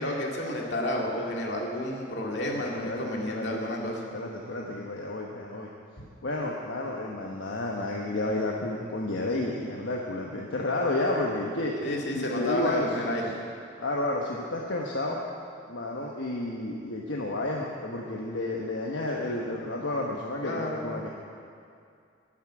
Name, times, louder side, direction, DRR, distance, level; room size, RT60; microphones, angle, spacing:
voice 1, 0.0-4.0 11.8-13.2 20.4-20.8, left 1 dB, 65° left, -1 dB, 2.2 m, -30 dB
voice 2, 2.6-3.5 4.1-5.7 6.2-11.8 12.1-13.1 13.8-15.2 15.7-21.1, left 2 dB, 80° left, -2 dB, 1.1 m, -31 dB
12.5 x 7.5 x 8.8 m, 2.4 s
head